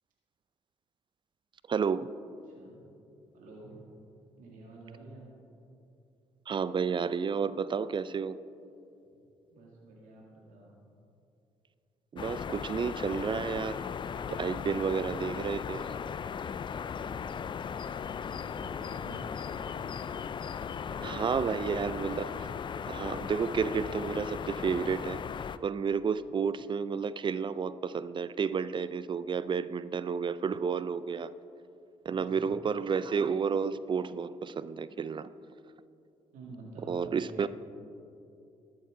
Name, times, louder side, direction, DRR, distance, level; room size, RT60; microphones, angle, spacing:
voice 1, 1.7-2.1 6.5-8.4 12.1-13.8 14.3-16.0 21.0-22.5 22.9-25.2 25.6-31.3 32.1-35.3 36.9-37.5, right 6 dB, 35° right, 16 dB, 0.4 m, -31 dB
voice 2, 2.5-2.8 3.3-3.8 4.3-5.2 9.0-9.2 9.5-10.7 17.0-17.6 17.8-20.1 20.7-21.8 26.3-26.4 32.1-32.5 36.3-37.5, right 2 dB, 75° right, -3 dB, 1.9 m, -50 dB
sound 1, 12.2-25.6, left 7 dB, 35° left, 0.3 m, -37 dB
13.0 x 8.8 x 3.7 m, 2.7 s
supercardioid pair, 60°, 14 cm